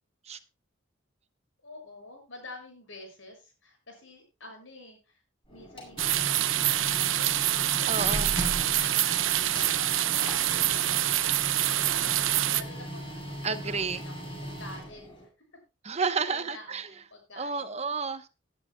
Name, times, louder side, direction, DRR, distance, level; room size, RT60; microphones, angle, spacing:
voice 1, 1.6-5.2 5.5-7.4 8.5-9.6 9.9-13.8 14.0-15.1 16.3-17.8, left 2 dB, 80° left, 6.8 m, -49 dB
Printer, 5.5-15.3, equal, 30° left, 5.8 m, -38 dB
sound 1, 6.0-12.6, right 14 dB, 85° right, 0.7 m, -26 dB
voice 2, 7.9-8.4 13.4-14.0 15.8-16.9 17.4-18.3, right 4 dB, 35° right, 0.9 m, -31 dB
19.0 x 11.0 x 2.2 m
head